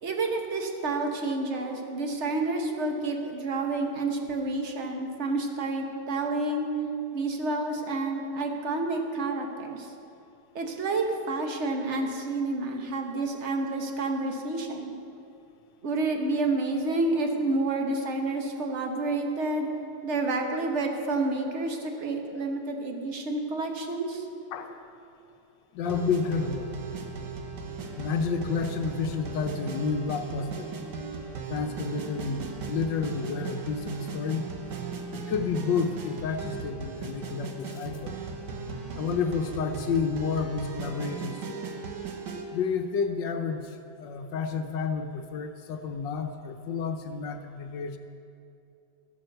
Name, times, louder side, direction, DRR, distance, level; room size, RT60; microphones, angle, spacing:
voice 1, 0.0-6.7 7.1-9.9 10.5-14.9 15.8-19.7 20.0-24.2, right 2 dB, 40° right, 3 dB, 1.4 m, -29 dB
voice 2, 25.7-27.0 28.0-30.7 31.5-34.5 35.1-38.1 39.0-41.7 42.5-48.0, left 5 dB, 75° left, 6 dB, 1.4 m, -30 dB
sound 1, 25.8-42.4, right 4 dB, 65° right, 1.7 m, -37 dB
13.5 x 8.8 x 6.6 m, 2.7 s
omnidirectional pair, 2.0 m